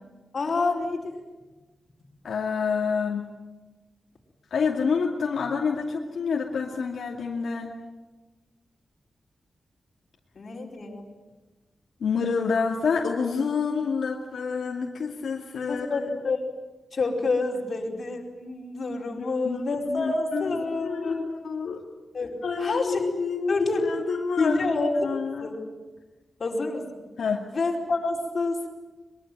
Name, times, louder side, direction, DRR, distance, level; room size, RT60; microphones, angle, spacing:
voice 1, 0.3-1.2 10.3-11.0 15.7-16.4 16.9-21.3 22.1-23.0 23.5-23.8 24.4-24.9 25.4-25.6 26.4-26.9 27.5-28.7, left 3 dB, 45° left, 0 dB, 4.8 m, -28 dB
voice 2, 2.2-3.3 4.5-7.7 12.0-16.1 19.2-19.6 19.9-21.8 22.4-24.6 25.0-25.5 27.2-27.4, left 5 dB, 75° left, -1 dB, 2.5 m, -28 dB
23.5 x 22.5 x 9.2 m, 1.2 s
wide cardioid pair, 145°, 0 cm